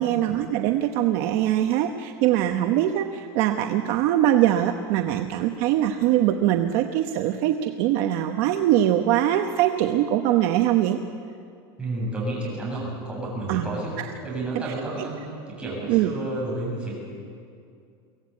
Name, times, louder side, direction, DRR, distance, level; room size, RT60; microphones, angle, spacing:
voice 1, 0.0-11.0 13.5-13.6 14.7-14.8 15.9-16.1, right 12 dB, 50° right, 6 dB, 1.0 m, -22 dB
voice 2, 11.8-13.9 14.2-15.1 15.5-17.0, right 2 dB, 10° right, -5 dB, 7.7 m, -31 dB
23.5 x 16.5 x 8.6 m, 2.4 s
supercardioid pair, 160°, 13 cm